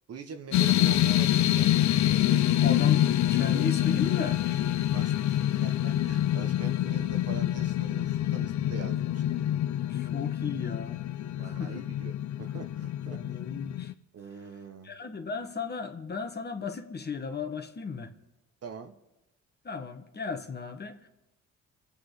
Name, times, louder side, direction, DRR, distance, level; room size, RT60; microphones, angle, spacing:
voice 1, 0.1-1.9 2.1-2.5 4.9-9.4 11.4-13.2 14.1-14.9 18.6-19.0, right 6 dB, 55° right, 7 dB, 1.4 m, -44 dB
sound 1, 0.5-13.9, left 12 dB, 65° left, 0.7 m, -26 dB
voice 2, 2.6-4.6 9.9-11.0 11.4-11.9 13.1-13.9 14.8-18.1 19.6-21.1, left 5 dB, 35° left, 6 dB, 1.6 m, -35 dB
26.0 x 8.7 x 5.0 m, 0.98 s
cardioid pair, 90°, 30 cm